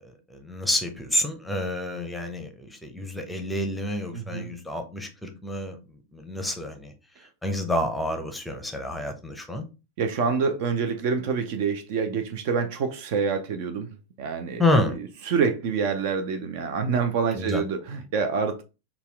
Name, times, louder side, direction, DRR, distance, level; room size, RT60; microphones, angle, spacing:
voice 1, 0.3-6.9 7.4-9.6 14.6-15.0 17.3-17.6, left 1 dB, 5° left, 0.7 m, -28 dB
voice 2, 4.1-4.5 10.0-13.9 14.2-14.6 14.9-18.6, right 5 dB, 50° right, 0.5 m, -27 dB
4.1 x 2.3 x 3.4 m
figure-of-eight pair, 90°, 0 cm